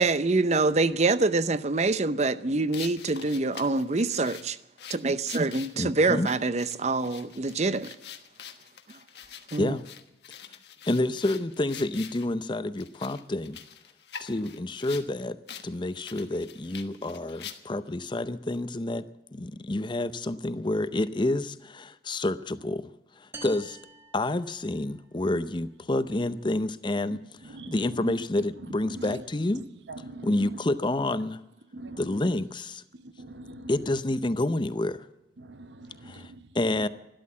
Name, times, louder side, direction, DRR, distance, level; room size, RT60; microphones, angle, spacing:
voice 1, 0.0-4.6 4.9-8.0 9.5-9.8, right 3 dB, 40° right, 0.7 m, -25 dB
sound 1, 2.7-12.3 12.8-15.1 15.5-15.7 16.0-17.9, left 8 dB, 70° left, 1.3 m, -45 dB
voice 2, 5.8-6.3 9.6-9.8 10.8-13.6 14.2-15.4 15.6-23.8 24.1-29.6 30.2-31.4 32.0-32.8 33.7-35.1 36.0-36.9, left 2 dB, 25° left, 0.6 m, -29 dB
sound 2, 23.3-25.1, right 3 dB, 15° right, 1.5 m, -46 dB
voice 3, 27.4-28.0 29.0-29.2 29.9-30.6 31.7-32.1 33.0-33.7 35.4-36.5, right 2 dB, 85° right, 0.9 m, -42 dB
13.0 x 12.5 x 8.4 m
head